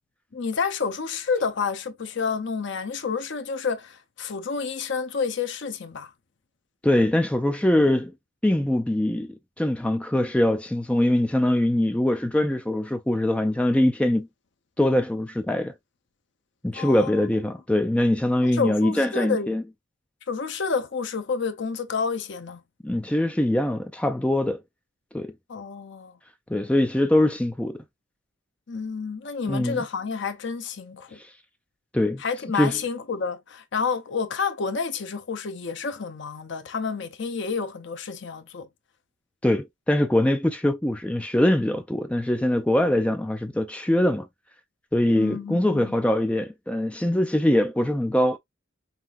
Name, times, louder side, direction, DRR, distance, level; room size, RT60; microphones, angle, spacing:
voice 1, 0.3-6.1 16.7-17.1 18.4-19.6 20.3-22.6 25.5-26.2 28.7-31.2 32.2-38.7 45.1-45.9, left 5 dB, 60° left, 0.7 m, -29 dB
voice 2, 6.8-8.1 8.4-14.3 14.8-15.7 16.6-19.6 22.8-24.6 25.1-25.3 26.5-27.8 29.5-29.8 31.9-32.2 32.6-32.8 39.4-44.3 44.9-48.4, left 1 dB, 5° left, 0.4 m, -23 dB
5.7 x 2.7 x 2.4 m
head